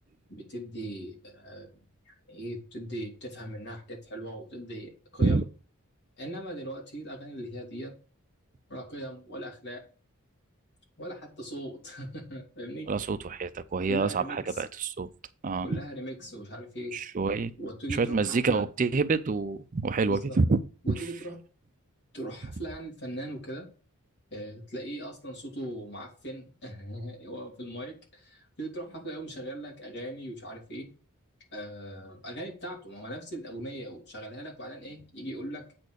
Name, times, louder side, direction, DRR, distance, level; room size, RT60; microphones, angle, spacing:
voice 1, 0.3-5.4 6.2-7.9 8.7-9.9 11.0-12.9 13.8-14.6 15.6-17.0 17.6-18.7 20.1-20.4 20.8-21.4 22.1-23.7 24.3-30.9 31.5-35.6, right 1 dB, 50° left, 3.5 m, -39 dB
voice 2, 12.9-15.1 15.4-15.8 16.9-17.5 17.9-20.6 20.9-21.0, right 4 dB, 35° right, 0.4 m, -27 dB
8.2 x 4.4 x 6.4 m
head